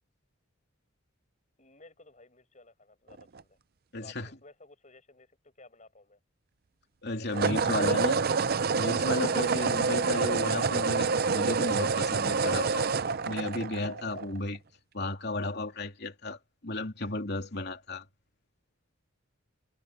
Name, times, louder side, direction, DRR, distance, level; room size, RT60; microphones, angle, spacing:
voice 1, 1.6-3.6 4.0-6.2, left 2 dB, 35° left, 7.2 m, -56 dB
sound 1, 3.1-3.4 7.3-14.4, right 4 dB, 45° right, 0.5 m, -27 dB
voice 2, 3.9-4.3 7.0-8.2 8.7-12.9 13.2-14.6 14.9-18.0, left 2 dB, 50° left, 3.1 m, -34 dB
head